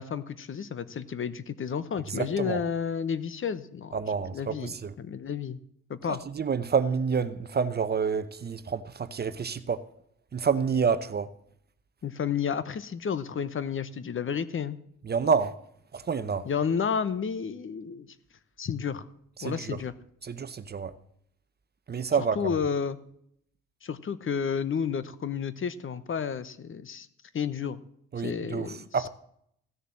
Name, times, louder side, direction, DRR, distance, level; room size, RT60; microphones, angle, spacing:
voice 1, 0.0-5.6 5.9-6.2 12.0-14.8 16.4-18.1 18.6-19.0 19.4-19.9 22.3-23.0 23.8-27.1 27.3-27.8 28.2-29.1, left 7 dB, 40° left, 0.9 m, -31 dB
voice 2, 2.2-2.6 3.9-4.9 6.3-9.8 10.3-11.3 15.1-15.5 15.9-16.5 19.4-19.8 20.2-20.9 21.9-22.6 28.1-29.1, right 6 dB, 35° right, 0.8 m, -28 dB
15.5 x 6.6 x 7.5 m
cardioid pair, 90°, 30 cm